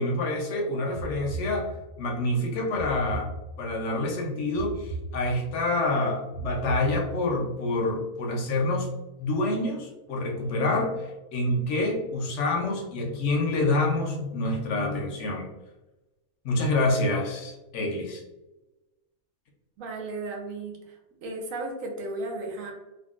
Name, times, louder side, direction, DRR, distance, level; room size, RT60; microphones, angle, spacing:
voice 1, 0.0-1.7 2.0-3.3 3.6-8.9 9.2-15.5 16.4-18.2, left 2 dB, 60° left, 1 dB, 0.9 m, -27 dB
sound 1, 0.9-2.1 2.7-3.9 4.5-5.7 6.3-7.5, right 2 dB, 85° left, 0.3 m, -37 dB
voice 2, 19.8-21.0 21.2-22.7, right 2 dB, 70° right, 1 dB, 1.1 m, -34 dB
3.6 x 2.2 x 2.4 m, 1.0 s
omnidirectional pair, 1.5 m